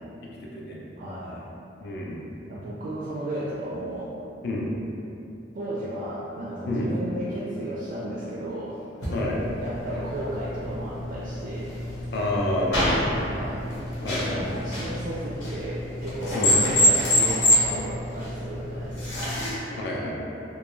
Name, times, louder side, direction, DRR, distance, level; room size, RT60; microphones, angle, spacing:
voice 1, 0.2-0.8 1.8-2.2 4.4-4.7 6.7-6.9 9.1-9.4 12.1-13.1 14.0-14.5 16.3-16.6 19.8-20.2, left 1 dB, 65° left, -3 dB, 0.4 m, -28 dB
voice 2, 1.0-1.4 2.5-4.1 5.5-8.9 9.6-11.8 13.2-13.7 14.2-19.4, right 1 dB, 50° right, -7 dB, 0.3 m, -34 dB
sound 1, 9.0-19.5, equal, 85° left, 0.8 m, -27 dB
2.3 x 2.2 x 2.9 m, 2.8 s
head